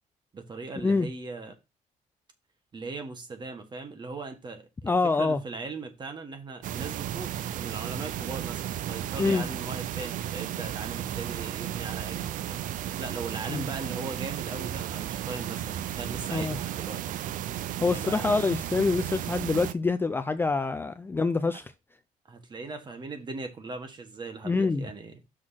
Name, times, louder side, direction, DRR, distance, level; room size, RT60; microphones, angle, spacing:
voice 1, 0.3-1.5 2.7-4.9 5.2-12.6 13.0-17.0 17.9-18.5 22.3-25.2, right 3 dB, 30° right, 1.6 m, -39 dB
voice 2, 4.8-5.4 9.2-9.4 13.5-13.7 16.3-16.6 17.8-21.7 24.4-24.8, left 3 dB, 15° left, 0.4 m, -26 dB
sound 1, 6.6-19.7, right 11 dB, 65° right, 0.5 m, -34 dB
6.3 x 4.2 x 5.8 m
cardioid pair, 130°, 15 cm